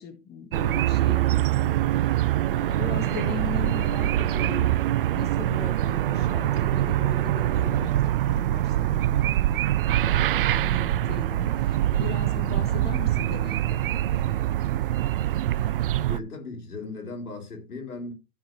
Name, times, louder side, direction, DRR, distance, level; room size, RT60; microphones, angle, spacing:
voice 1, 0.0-4.7 5.1-14.4, left 7 dB, 20° left, 1.7 m, -39 dB
sound 1, 0.5-16.2, right 13 dB, 40° right, 0.4 m, -24 dB
voice 2, 16.1-18.1, left 3 dB, 80° left, 4.2 m, -37 dB
15.0 x 5.5 x 3.2 m
hypercardioid pair, 130°, 44 cm